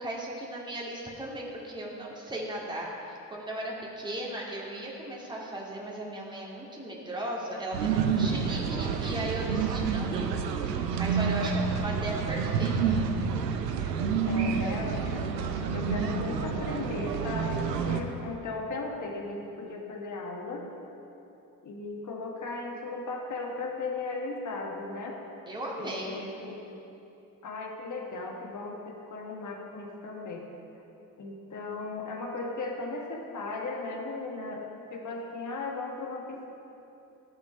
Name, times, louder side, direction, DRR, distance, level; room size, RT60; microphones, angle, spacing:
voice 1, 0.0-10.3 10.7-13.0 25.5-26.1, right 1 dB, 10° right, -4 dB, 2.1 m, -37 dB
sound 1, 7.7-18.0, right 6 dB, 85° right, 0.6 m, -29 dB
voice 2, 14.3-15.3 15.7-20.7 21.6-25.2 25.8-26.6 27.4-30.5 31.2-34.6 34.9-36.6, left 3 dB, 40° left, 0 dB, 1.5 m, -36 dB
13.0 x 6.0 x 5.1 m, 2.9 s
figure-of-eight pair, 45°, 48 cm